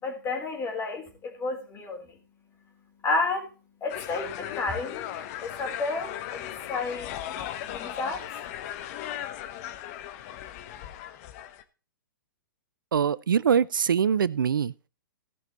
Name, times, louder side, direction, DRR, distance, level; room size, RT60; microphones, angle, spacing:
voice 1, 0.0-2.2 3.0-3.5 3.8-5.1 5.4-8.3, left 3 dB, 20° left, 3.8 m, -31 dB
sound 1, 3.9-11.6, left 11 dB, 45° left, 1.1 m, -37 dB
voice 2, 12.9-14.7, right 7 dB, 75° right, 0.5 m, -23 dB
16.0 x 6.1 x 4.0 m
figure-of-eight pair, 115°, 11 cm